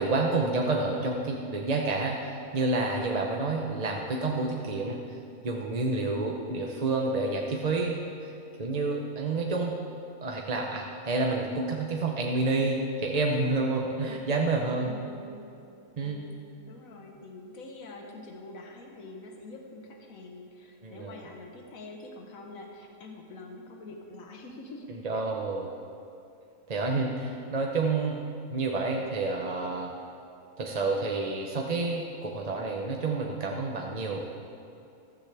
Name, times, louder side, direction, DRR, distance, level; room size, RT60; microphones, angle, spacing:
voice 1, 0.0-5.0 5.4-8.0 8.2-8.3 8.6-9.8 10.2-15.0 16.0-16.2 20.8-21.2 24.9-25.7 26.7-28.2 28.5-29.9 30.6-34.2, right 3 dB, 35° right, 0 dB, 0.7 m, -29 dB
voice 2, 14.7-15.5 16.0-16.4 16.7-25.0, left 2 dB, 70° left, 2 dB, 1.6 m, -45 dB
15.0 x 13.5 x 3.4 m, 2.6 s
omnidirectional pair, 1.5 m